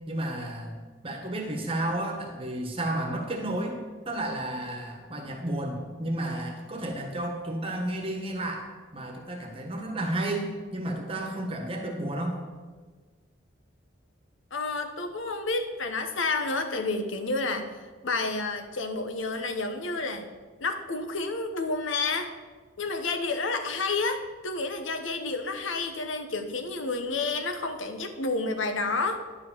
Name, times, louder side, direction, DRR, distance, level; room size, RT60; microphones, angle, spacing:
voice 1, 0.1-0.7 1.0-3.7 4.0-12.4, right 1 dB, 25° right, 2 dB, 1.4 m, -32 dB
voice 2, 14.5-17.7 18.0-20.3 20.6-22.3 22.8-29.2, left 3 dB, 75° left, 7 dB, 0.9 m, -30 dB
10.5 x 4.9 x 7.4 m, 1.4 s
head